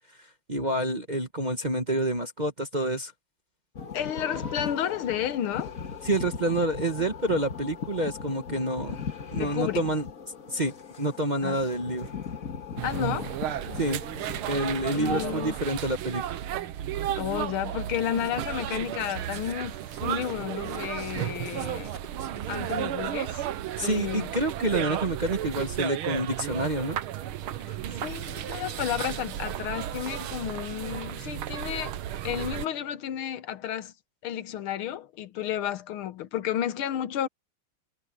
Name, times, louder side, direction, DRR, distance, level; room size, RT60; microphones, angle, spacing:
voice 1, 0.5-3.1 6.0-9.0 9.3-10.0 10.5-12.1 13.8-14.0 14.5-16.2 23.8-27.0, right 1 dB, 25° right, 1.1 m, -28 dB
sound 1, 3.8-15.5, left 6 dB, 40° left, 2.1 m, -39 dB
voice 2, 3.9-5.8 9.4-9.9 11.4-11.6 12.8-13.4 14.9-15.6 17.2-21.9 22.5-23.4 23.8-24.3 27.7-31.9 32.2-33.9 34.2-37.3, left 10 dB, 80° left, 1.8 m, -32 dB
sound 2, 12.8-32.7, right 11 dB, 90° right, 1.8 m, -33 dB
sound 3, 18.1-23.0, right 3 dB, 55° right, 6.3 m, -47 dB
omnidirectional pair, 2.3 m